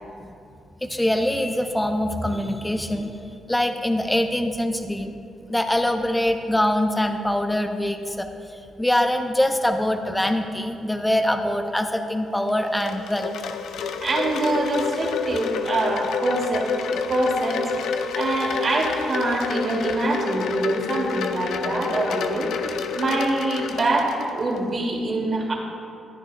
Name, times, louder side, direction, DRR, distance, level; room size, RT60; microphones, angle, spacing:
voice 1, 0.8-3.1 3.5-5.1 5.5-8.3 8.8-13.3, left 1 dB, 10° left, 6 dB, 0.7 m, -23 dB
Wind chime, 12.4-24.6, left 5 dB, 80° left, 0.5 m, -29 dB
voice 2, 14.0-17.6 18.1-22.5 22.9-25.5, right 2 dB, 50° right, -1 dB, 2.3 m, -25 dB
14.0 x 10.0 x 2.3 m, 2.6 s
supercardioid pair, 50°, 0 cm